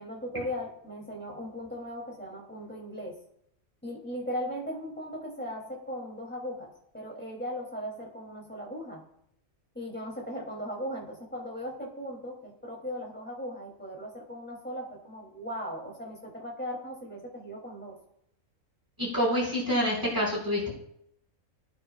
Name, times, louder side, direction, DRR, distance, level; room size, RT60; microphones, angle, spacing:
voice 1, 0.0-3.2 3.8-9.1 9.7-18.0, equal, 5° left, -2 dB, 3.0 m, -38 dB
voice 2, 19.0-20.7, equal, 15° right, -6 dB, 5.5 m, -27 dB
22.5 x 9.5 x 2.4 m, 0.74 s
omnidirectional pair, 1.4 m